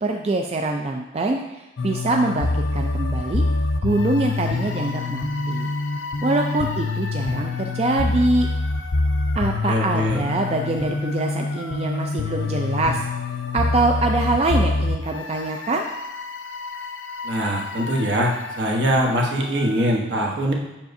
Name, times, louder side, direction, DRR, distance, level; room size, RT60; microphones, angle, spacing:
voice 1, 0.0-3.4 3.8-5.7 6.2-8.5 9.3-13.1 13.5-15.9, right 2 dB, 35° right, 2 dB, 0.3 m, -24 dB
sound 1, 1.8-20.0, left 3 dB, 85° left, 0.5 m, -26 dB
voice 2, 9.7-10.2 17.2-20.5, equal, 70° right, -1 dB, 1.1 m, -22 dB
7.2 x 5.9 x 2.6 m, 1.0 s
head